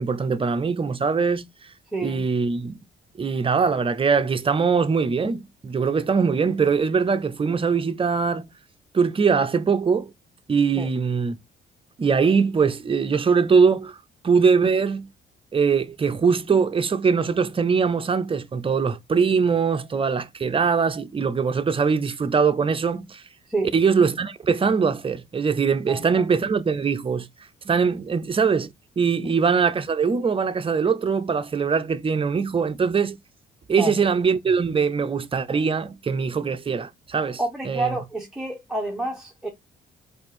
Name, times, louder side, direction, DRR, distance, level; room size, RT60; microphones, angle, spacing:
voice 1, 0.0-1.5 2.0-2.8 3.2-8.5 8.9-10.1 10.5-11.4 12.0-14.0 14.2-15.1 15.5-23.2 23.7-27.3 27.6-33.2 33.7-37.4 37.7-38.0, right 5 dB, 25° right, 0.6 m, -22 dB
voice 2, 1.9-2.3 10.8-10.9 23.5-23.8 25.9-26.2 29.2-29.3 33.8-34.0 37.4-39.5, right 2 dB, 5° right, 1.1 m, -29 dB
4.6 x 2.5 x 4.3 m
cardioid pair, 90°, 20 cm